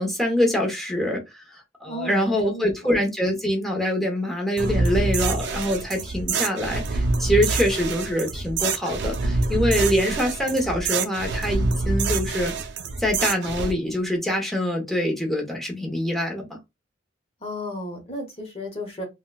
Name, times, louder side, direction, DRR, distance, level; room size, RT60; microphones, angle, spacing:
voice 1, 0.0-12.5 13.0-16.6, equal, ahead, 0.8 m, -25 dB
voice 2, 1.9-2.7 10.0-10.2 17.4-19.0, left 1 dB, 35° left, 0.9 m, -34 dB
sound 1, 4.6-13.7, right 3 dB, 65° right, 0.5 m, -26 dB
3.7 x 2.2 x 2.3 m
head